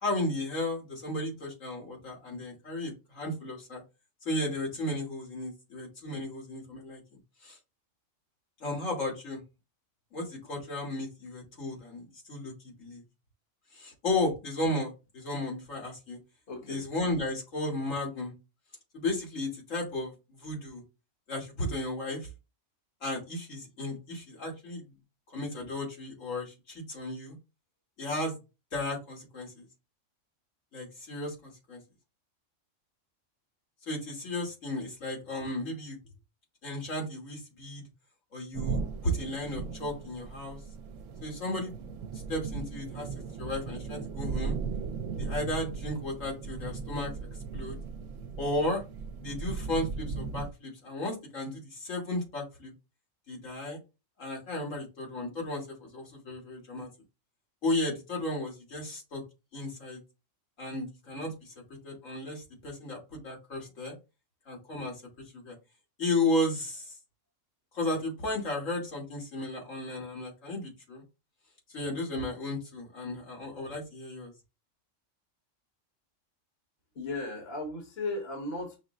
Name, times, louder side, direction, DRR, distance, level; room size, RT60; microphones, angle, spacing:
voice 1, 0.0-3.8 4.3-7.0 7.4-7.6 8.6-9.4 10.1-13.0 13.7-16.2 16.7-18.3 18.9-20.8 21.3-22.3 23.0-24.8 25.3-27.4 28.0-28.4 28.7-29.7 30.7-31.8 33.9-36.0 36.6-37.8 38.3-40.6 41.2-41.7 42.3-43.1 43.4-44.6 45.2-47.1 47.5-47.8 48.4-48.8 49.2-52.7 53.3-53.8 54.2-56.9 57.6-59.2 59.5-60.0 60.6-61.5 61.8-63.9 64.5-65.0 65.3-65.6 66.0-66.9 67.7-71.0 71.7-74.3, left 1 dB, 85° left, 2.1 m, -34 dB
voice 2, 16.5-16.8 76.9-78.8, left 2 dB, 55° left, 1.4 m, -36 dB
sound 1, 38.5-50.5, right 5 dB, 80° right, 0.9 m, -37 dB
5.7 x 2.1 x 3.6 m
omnidirectional pair, 1.3 m